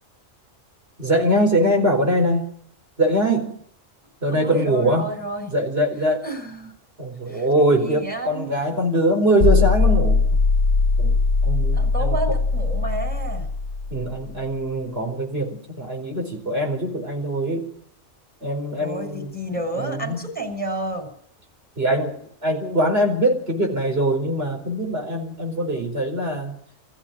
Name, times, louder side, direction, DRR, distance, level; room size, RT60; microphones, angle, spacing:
voice 1, 1.0-2.5 3.0-3.6 4.2-5.1 5.5-6.2 7.0-10.2 11.0-11.1 11.4-12.2 13.9-17.7 18.4-19.3 19.8-20.2 21.8-26.5, right 1 dB, 50° right, 2 dB, 5.0 m, -22 dB
voice 2, 4.3-5.5 6.2-6.7 7.3-8.5 11.7-13.5 18.8-21.1, right 2 dB, 5° left, 2 dB, 6.6 m, -31 dB
sound 1, 9.4-14.4, left 4 dB, 50° left, 1.5 m, -20 dB
24.0 x 14.5 x 9.3 m, 0.65 s
omnidirectional pair, 1.3 m